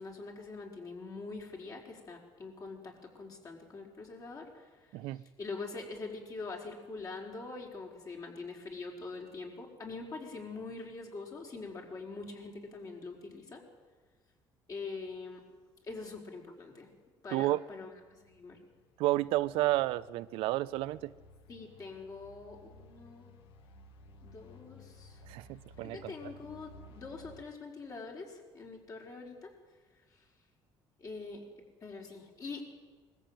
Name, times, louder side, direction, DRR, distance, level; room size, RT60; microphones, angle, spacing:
voice 1, 0.0-13.6 14.7-15.4 15.8-16.9 17.2-18.6 21.5-23.3 24.2-25.2 25.8-29.5 30.1-30.2 31.0-31.5 31.8-32.7, left 3 dB, 40° left, 0 dB, 5.1 m, -44 dB
voice 2, 17.3-17.6 19.0-21.1 25.3-26.1, right 17 dB, 85° right, 15 dB, 0.6 m, -31 dB
sound 1, 17.8-27.4, left 2 dB, 75° left, 1.8 m, -56 dB
21.5 x 14.5 x 9.2 m, 1.4 s
cardioid pair, 100°, 9 cm